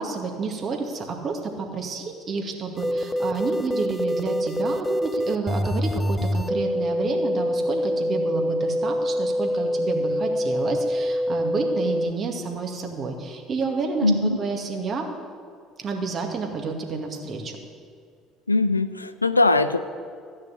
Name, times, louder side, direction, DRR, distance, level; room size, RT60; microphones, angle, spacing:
voice 1, 0.0-14.1 14.4-15.1 15.8-17.6, right 4 dB, 40° right, 2 dB, 2.1 m, -30 dB
sound 1, 2.8-12.1, equal, 5° left, 0.5 m, -25 dB
voice 2, 14.0-14.4 18.5-19.8, left 2 dB, 90° left, 11 dB, 0.4 m, -21 dB
13.5 x 6.5 x 8.4 m, 2.2 s
figure-of-eight pair, 60°, 0 cm